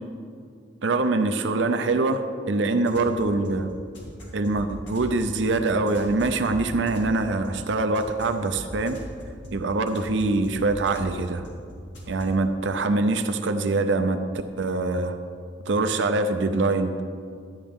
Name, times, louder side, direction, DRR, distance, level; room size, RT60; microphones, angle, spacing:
voice 1, 0.8-3.7 4.3-9.0 9.5-11.4 12.1-14.2 14.6-15.2 15.7-17.0, right 3 dB, 65° right, 7 dB, 0.5 m, -24 dB
sound 1, 2.7-12.2, equal, 70° left, 2.5 m, -41 dB
12.0 x 8.6 x 3.6 m, 2.3 s
head